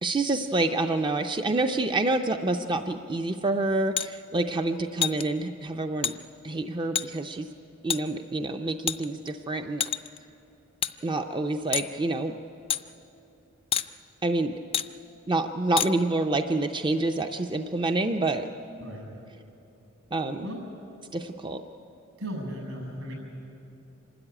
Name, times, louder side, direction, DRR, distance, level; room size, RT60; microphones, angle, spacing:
voice 1, 0.0-6.1 6.4-7.5 7.8-9.8 11.0-12.3 14.2-14.6 15.3-18.5 20.1-20.5 21.1-21.6, right 2 dB, 20° right, 6 dB, 0.5 m, -27 dB
sound 1, 4.0-4.1 5.0-5.2 6.0-6.2 7.0-7.1 7.9-8.0 8.9-9.3 9.8-10.2 10.8-10.9 11.7-11.9 12.7-12.8 13.7-13.9 14.7-14.9 15.8-15.9, left 8 dB, 25° left, 0.4 m, -27 dB
voice 2, 22.2-23.1, equal, 75° right, 1 dB, 7.5 m, -36 dB
26.0 x 13.0 x 9.9 m, 2.9 s
head